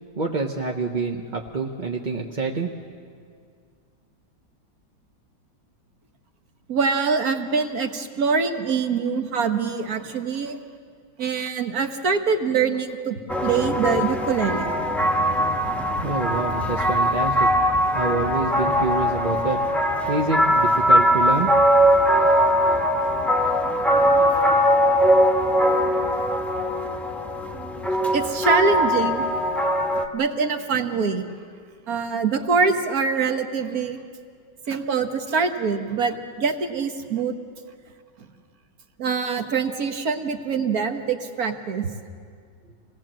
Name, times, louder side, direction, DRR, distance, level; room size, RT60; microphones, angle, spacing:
voice 1, 0.2-2.7 16.0-17.5 17.9-19.6 20.1-21.5, right 3 dB, 35° right, 1 dB, 0.9 m, -26 dB
voice 2, 6.7-10.6 11.2-14.7 28.1-29.2 30.1-31.3 31.9-34.0 34.7-37.3 39.0-41.9, right 5 dB, 55° right, 6 dB, 1.7 m, -24 dB
sound 1, 13.3-30.1, equal, ahead, 1.1 m, -21 dB
27.0 x 19.5 x 7.6 m, 2.1 s
omnidirectional pair, 2.0 m